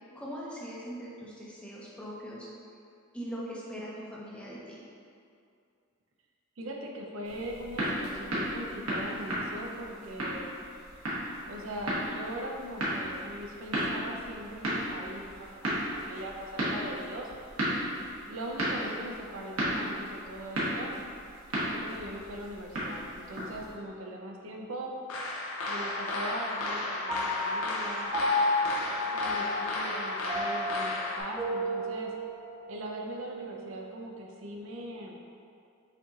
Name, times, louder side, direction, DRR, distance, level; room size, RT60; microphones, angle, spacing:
voice 1, 0.1-2.5 3.1-4.8 18.8-18.9, equal, 5° left, -6 dB, 0.5 m, -41 dB
voice 2, 6.6-10.5 11.4-17.3 18.3-20.9 21.6-24.9 25.7-28.1 29.1-32.1 32.7-35.2, right 1 dB, 65° right, 0 dB, 0.5 m, -40 dB
sound 1, 7.2-23.7, equal, 85° right, 1.1 m, -34 dB
sound 2, 25.1-31.2, left 2 dB, 85° left, 0.5 m, -33 dB
Piano, 27.1-33.8, left 1 dB, 25° right, 0.9 m, -33 dB
5.7 x 2.7 x 2.3 m, 2.4 s
head